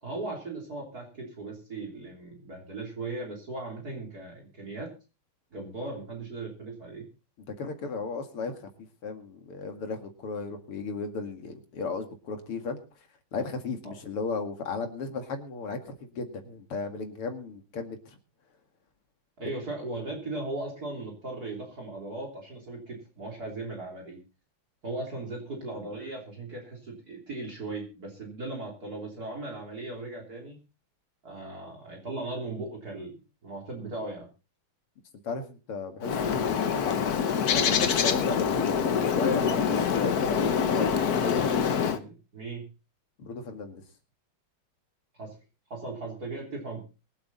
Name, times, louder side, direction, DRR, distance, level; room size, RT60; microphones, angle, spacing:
voice 1, 0.0-4.9 5.5-7.1 13.8-13.9 19.4-24.2 24.8-30.6 31.2-34.3 41.9-42.7 45.2-45.4 45.7-46.8, right 2 dB, 45° right, -1 dB, 3.8 m, -38 dB
voice 2, 7.6-8.6 9.0-12.8 13.3-18.2 35.2-41.4 43.2-43.8, left 4 dB, 85° left, 6 dB, 3.0 m, -35 dB
Bird, 36.0-42.0, left 7 dB, 50° left, 1.4 m, -25 dB
23.0 x 8.3 x 4.1 m, 0.32 s
omnidirectional pair, 2.4 m